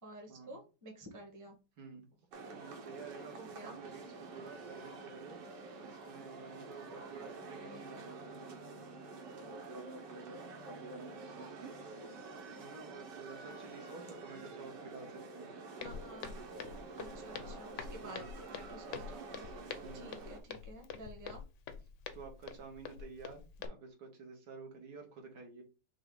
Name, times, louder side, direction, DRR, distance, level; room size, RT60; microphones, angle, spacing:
voice 1, 0.0-1.6 3.4-3.8 15.8-16.4 17.0-19.4 19.9-21.4, right 1 dB, 15° right, 1 dB, 0.9 m, -51 dB
sound 1, 2.3-20.4, right 3 dB, 90° right, 1.6 m, -48 dB
voice 2, 2.5-5.4 5.8-8.5 12.6-15.5 18.0-18.2 19.8-20.1 22.1-25.6, right 4 dB, 70° right, 2 dB, 1.7 m, -51 dB
Walk footsteps, 15.8-23.7, left 6 dB, 65° left, 0.7 m, -46 dB
5.8 x 2.3 x 3.8 m, 0.31 s
omnidirectional pair, 1.8 m